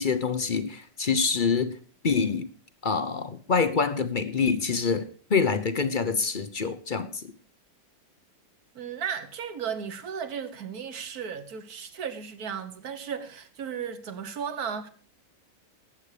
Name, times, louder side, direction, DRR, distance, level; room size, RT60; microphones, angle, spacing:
voice 1, 0.0-1.8 2.0-2.5 2.8-7.3, left 5 dB, 45° left, 0.6 m, -26 dB
voice 2, 8.7-14.9, right 7 dB, 55° right, 1.7 m, -35 dB
19.0 x 8.4 x 5.0 m
omnidirectional pair, 2.0 m